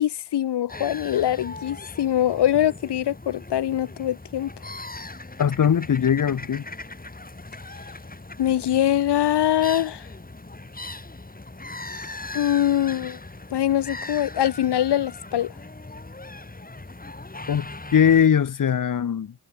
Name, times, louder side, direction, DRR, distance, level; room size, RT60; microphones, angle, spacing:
voice 1, 0.0-4.5 8.4-10.1 12.3-13.2 13.5-15.6, left 11 dB, 90° left, 1.2 m, -23 dB
sound 1, 0.7-18.3, left 2 dB, 20° left, 6.7 m, -39 dB
voice 2, 5.4-6.6 17.5-19.3, left 8 dB, 55° left, 1.3 m, -20 dB
cardioid pair, 75°, 39 cm